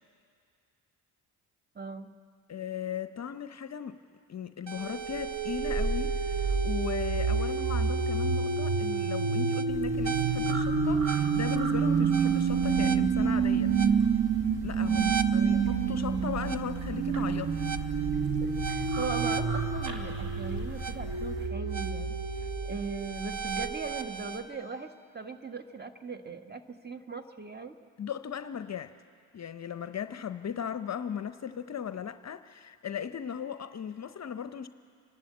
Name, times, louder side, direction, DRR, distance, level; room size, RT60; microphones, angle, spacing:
voice 1, 1.7-2.1 15.0-15.1 15.4-16.3 18.1-27.8, right 4 dB, 20° right, 8 dB, 1.4 m, -40 dB
voice 2, 2.5-4.0 4.3-13.7 14.6-17.7 28.0-28.9 29.3-34.7, left 8 dB, 40° left, 11 dB, 0.7 m, -37 dB
sound 1, 4.7-24.4, right 5 dB, 45° right, 1.2 m, -28 dB
sound 2, 9.7-21.5, right 2 dB, 70° right, 2.8 m, -39 dB
27.0 x 12.0 x 8.5 m, 2.4 s
supercardioid pair, 55°, 44 cm